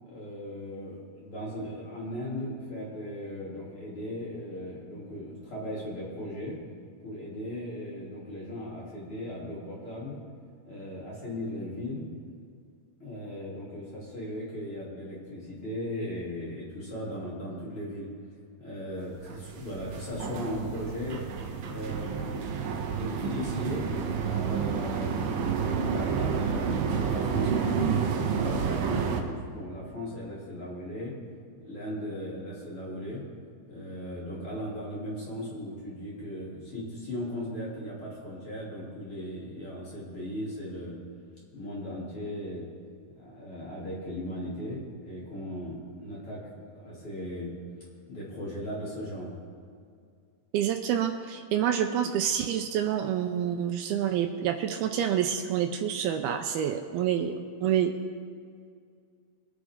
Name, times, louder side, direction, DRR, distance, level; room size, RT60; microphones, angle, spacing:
voice 1, 0.0-6.6 7.0-10.2 10.6-12.1 13.0-18.1 18.6-21.3 21.6-22.5 22.9-25.2 25.7-31.1 31.6-33.2 33.6-41.0 41.5-42.6 43.2-47.5 48.1-49.3, left 1 dB, 35° left, -6 dB, 3.5 m, -37 dB
sound 1, 19.2-29.2, right 6 dB, 70° right, 2.4 m, -30 dB
voice 2, 50.5-57.9, right 9 dB, 85° right, 6 dB, 2.2 m, -28 dB
21.5 x 9.9 x 3.7 m, 2.2 s
omnidirectional pair, 4.9 m